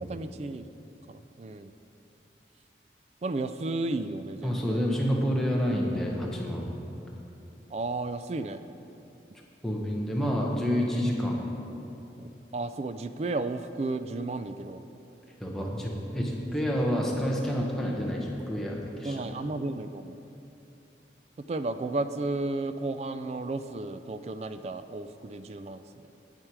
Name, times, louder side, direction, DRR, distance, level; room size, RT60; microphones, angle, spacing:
voice 1, 0.0-0.7 1.1-1.7 3.2-4.8 7.7-8.6 12.2-12.3 12.5-14.8 19.0-20.2 21.4-25.8, right 2 dB, 35° right, 11 dB, 0.3 m, -33 dB
voice 2, 4.4-6.7 9.6-11.5 15.4-19.3, equal, ahead, -3 dB, 1.0 m, -28 dB
9.1 x 8.8 x 4.7 m, 2.9 s
head